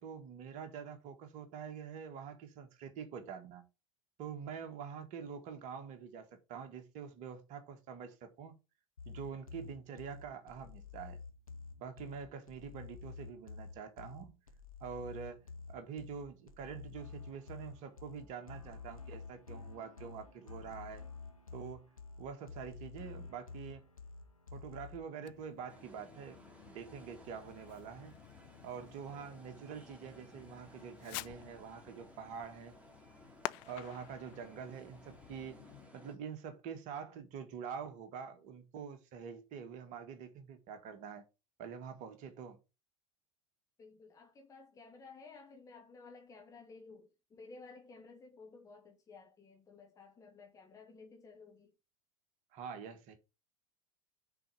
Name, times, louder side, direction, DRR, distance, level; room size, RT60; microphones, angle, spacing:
voice 1, 0.0-3.7 4.2-8.5 9.0-11.2 11.8-14.4 14.8-15.4 15.7-21.0 21.5-21.9 22.2-23.8 24.5-28.1 28.6-32.7 33.6-35.6 35.9-41.2 41.6-42.6 52.5-53.2, right 7 dB, 45° right, 1.6 m, -46 dB
sound 1, 9.0-25.0, left 4 dB, 85° left, 1.3 m, -50 dB
Fireworks, 25.2-35.9, left 20 dB, 45° left, 0.4 m, -51 dB
sound 2, 25.7-36.2, left 1 dB, 10° right, 2.4 m, -58 dB
voice 2, 43.8-51.7, left 4 dB, 20° left, 1.4 m, -55 dB
6.7 x 4.3 x 6.5 m
figure-of-eight pair, 80°, 17 cm